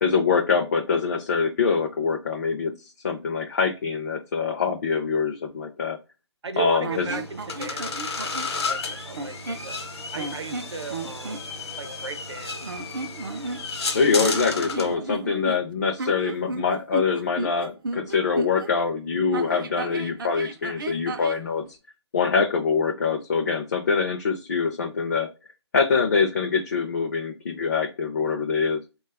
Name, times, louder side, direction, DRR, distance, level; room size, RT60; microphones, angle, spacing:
voice 1, 0.0-2.7 3.0-6.0 6.6-7.2 13.9-21.8 22.1-25.3 25.7-28.8, left 5 dB, 40° left, 2 dB, 0.4 m, -24 dB
voice 2, 6.4-9.8 10.1-11.5 11.8-12.6, right 5 dB, 75° right, 8 dB, 0.7 m, -37 dB
sound 1, 6.8-8.6 9.1-9.7 10.2-11.4 12.6-13.9 14.2-18.7 19.3-21.5, right 3 dB, 50° right, 0.4 m, -34 dB
sound 2, 6.9-14.9, left 4 dB, 65° left, 0.9 m, -33 dB
3.2 x 2.3 x 3.2 m, 0.30 s
hypercardioid pair, 165°, 15 cm